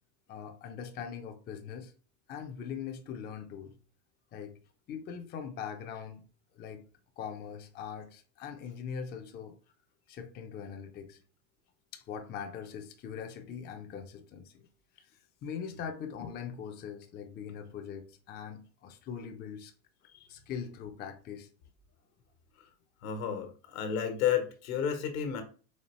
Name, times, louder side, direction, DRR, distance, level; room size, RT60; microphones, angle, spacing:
voice 1, 0.3-1.9 2.3-3.8 4.3-4.6 4.9-6.3 6.5-6.9 7.2-9.6 10.1-11.2 11.9-14.7 15.0-19.7 20.3-21.5, left 7 dB, 25° left, 0.5 m, -41 dB
voice 2, 23.0-25.4, left 8 dB, 75° left, 1.2 m, -31 dB
4.3 x 3.0 x 3.0 m
supercardioid pair, 125°, 41 cm